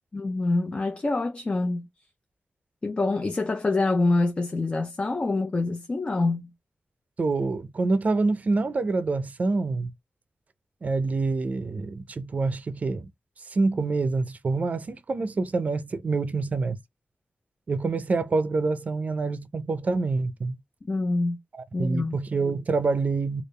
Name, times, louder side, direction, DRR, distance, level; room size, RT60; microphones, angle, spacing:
voice 1, 0.1-1.8 2.8-6.5 20.9-21.4 21.7-22.2, left 2 dB, 30° left, 0.5 m, -26 dB
voice 2, 7.2-9.9 10.8-13.1 13.5-16.8 17.7-20.6 21.5-23.4, right 3 dB, 45° right, 0.5 m, -26 dB
3.5 x 2.4 x 3.2 m
wide cardioid pair, 150°, 4 cm